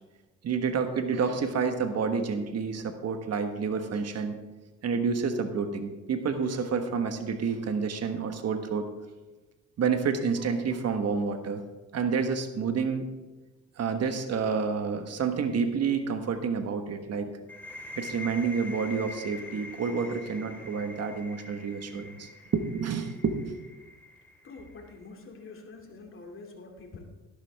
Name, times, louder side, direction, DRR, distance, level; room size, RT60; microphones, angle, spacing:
voice 1, 0.4-4.4 4.8-8.9 9.8-11.6 11.9-13.0 13.8-17.4 17.9-23.6, right 5 dB, 55° right, 7 dB, 1.4 m, -29 dB
sound 1, 17.5-25.0, left 2 dB, 5° left, 3.0 m, -45 dB
voice 2, 24.4-27.0, left 3 dB, 45° left, 1 dB, 2.6 m, -46 dB
12.0 x 11.5 x 3.5 m, 1.2 s
cardioid pair, 90°, 30 cm